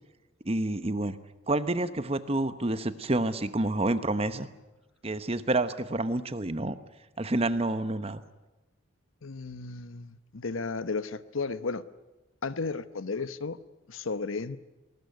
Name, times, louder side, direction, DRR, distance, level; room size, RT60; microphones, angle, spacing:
voice 1, 0.4-1.2 1.5-4.5 5.0-6.8 7.2-8.2, right 2 dB, 30° right, 12 dB, 1.0 m, -28 dB
voice 2, 9.2-11.8 12.4-13.6 13.9-14.6, left 4 dB, 85° left, 14 dB, 1.0 m, -34 dB
20.0 x 19.0 x 9.4 m, 1.1 s
head